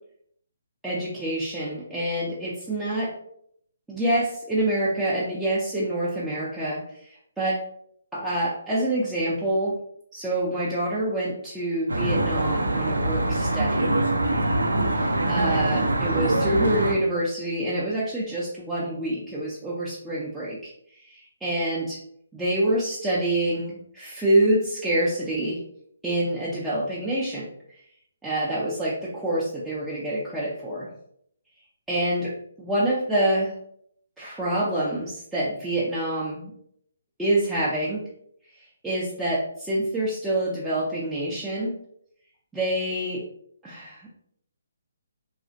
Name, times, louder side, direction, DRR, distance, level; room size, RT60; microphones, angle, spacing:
voice 1, 0.8-3.1 3.9-7.6 8.1-9.8 10.1-13.9 14.9-22.0 22.3-25.6 26.0-27.5 28.2-30.9 31.9-33.5 34.2-36.5 37.2-38.0 38.5-41.8 42.5-43.2 43.6-44.1, right 1 dB, 5° right, -9 dB, 0.5 m, -26 dB
Traffic noise roadway noise, 11.9-16.9, right 1 dB, 75° right, 0.4 m, -24 dB
2.9 x 2.4 x 2.5 m, 0.69 s
figure-of-eight pair, 140°, 0 cm